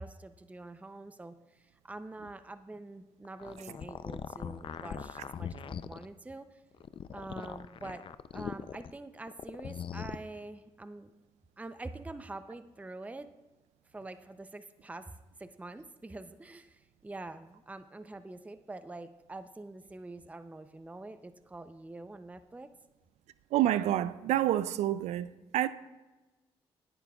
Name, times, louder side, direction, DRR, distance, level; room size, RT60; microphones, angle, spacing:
voice 1, 0.0-6.5 7.1-8.0 8.3-11.1 11.6-13.3 13.9-15.1 15.4-22.7, right 2 dB, 15° right, 0.6 m, -45 dB
sound 1, 3.3-6.1 6.7-8.9 9.3-10.2, left 7 dB, 50° left, 0.5 m, -40 dB
voice 2, 23.5-25.3 25.5-25.7, right 13 dB, 85° right, 0.4 m, -27 dB
18.5 x 9.0 x 2.4 m
cardioid pair, 65°, 11 cm